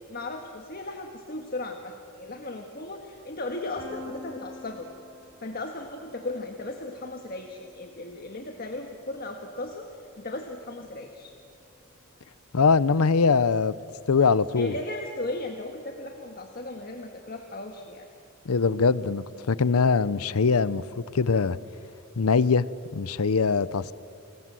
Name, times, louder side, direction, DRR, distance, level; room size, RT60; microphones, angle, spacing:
voice 1, 0.1-4.9 5.4-11.3 14.5-18.1, left 2 dB, 40° left, 1.6 m, -36 dB
Piano, 3.8-9.5, left 2 dB, 20° left, 5.4 m, -48 dB
voice 2, 12.5-13.7 14.1-14.7 18.5-20.8 21.1-21.6 22.2-22.6 22.9-23.9, left 5 dB, 80° left, 0.6 m, -22 dB
29.5 x 21.0 x 7.7 m
head